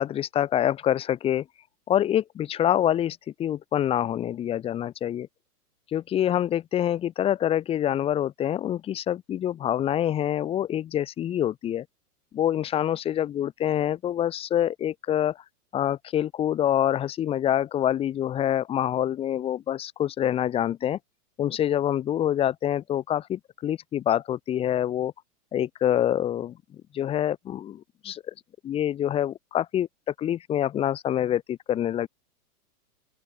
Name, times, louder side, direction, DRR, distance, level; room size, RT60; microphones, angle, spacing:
voice 1, 0.0-1.4 1.9-5.3 5.9-11.8 12.3-15.4 15.7-21.0 21.4-25.1 25.5-26.6 26.9-28.3 28.6-29.9 30.2-32.1, left 11 dB, 10° left, 3.0 m, -26 dB
open air
hypercardioid pair, 180°, 47 cm